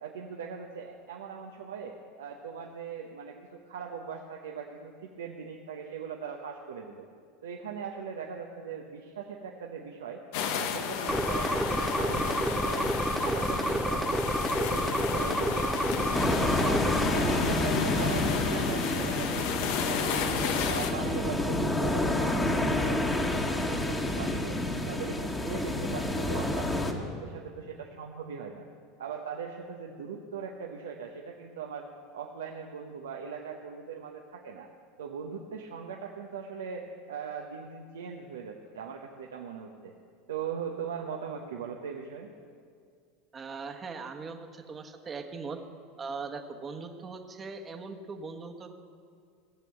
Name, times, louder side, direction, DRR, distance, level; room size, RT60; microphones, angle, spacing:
voice 1, 0.0-7.1 7.4-10.2 10.6-12.9 13.2-16.2 16.6-24.6 24.9-28.6 29.0-31.9 32.1-34.7 35.0-39.9 40.3-42.3, right 6 dB, 85° right, 1 dB, 0.9 m, -40 dB
sound 1, 10.3-20.9, left 7 dB, 70° left, 1.0 m, -32 dB
sound 2, 11.1-17.1, right 1 dB, ahead, 0.6 m, -29 dB
sound 3, 16.1-26.9, left 1 dB, 15° left, 1.5 m, -29 dB
voice 2, 43.3-45.6 46.0-48.7, right 4 dB, 30° right, 5 dB, 1.2 m, -40 dB
16.0 x 6.9 x 7.6 m, 2.2 s
hypercardioid pair, 90°, 0 cm